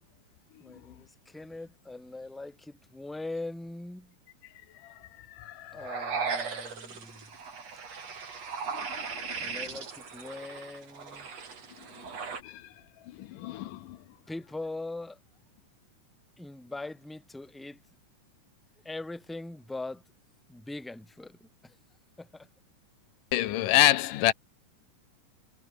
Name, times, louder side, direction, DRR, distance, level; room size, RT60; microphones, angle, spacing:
voice 1, 0.6-4.1 5.7-7.3 9.4-11.3 14.3-15.2 16.4-17.8 18.8-20.0 20.5-21.8 22.2-22.5, left 2 dB, ahead, 2.6 m, -41 dB
voice 2, 5.4-5.8 8.7-8.9 12.4-12.6 13.2-14.0 23.3-24.3, left 14 dB, 80° left, 2.5 m, -26 dB
sound 1, 5.8-12.4, right 5 dB, 55° right, 4.7 m, -37 dB
omnidirectional pair, 3.7 m